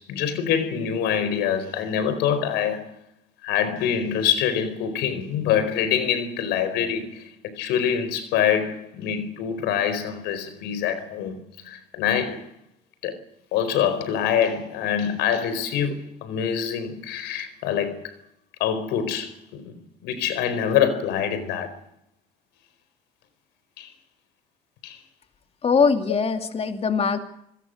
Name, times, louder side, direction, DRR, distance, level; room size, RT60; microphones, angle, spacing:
voice 1, 0.0-2.9 3.4-12.5 13.0-13.2 13.5-18.1 18.6-19.7 20.0-21.8 23.8-23.9 24.8-25.0, left 8 dB, 90° left, 4.5 m, -25 dB
voice 2, 25.6-27.2, left 5 dB, 35° left, 2.5 m, -21 dB
27.0 x 20.5 x 6.6 m
cardioid pair, 110°, 17 cm